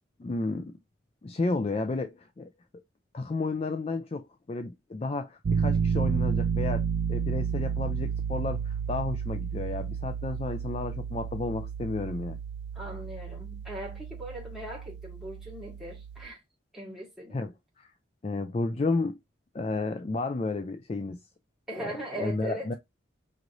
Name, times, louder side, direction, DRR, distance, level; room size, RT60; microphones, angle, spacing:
voice 1, 0.2-0.8 1.2-2.8 3.1-12.4 17.3-17.9 18.2-19.2 19.5-21.2 21.8-22.7, left 3 dB, 30° left, 0.4 m, -32 dB
Piano, 5.4-16.3, right 6 dB, 60° right, 0.4 m, -31 dB
voice 2, 12.7-16.4 16.7-17.5 21.7-22.8, right 1 dB, ahead, 1.9 m, -39 dB
5.0 x 3.0 x 2.5 m
head